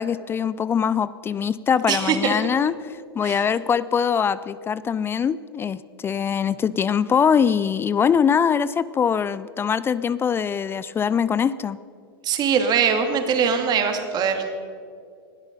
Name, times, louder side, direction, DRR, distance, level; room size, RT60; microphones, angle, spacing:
voice 1, 0.0-11.8, left 7 dB, 20° left, 17 dB, 0.4 m, -22 dB
voice 2, 1.9-2.4 3.2-3.4 12.2-14.4, right 6 dB, 35° right, 6 dB, 2.3 m, -22 dB
20.0 x 12.5 x 5.3 m, 2.3 s
hypercardioid pair, 105°, 13 cm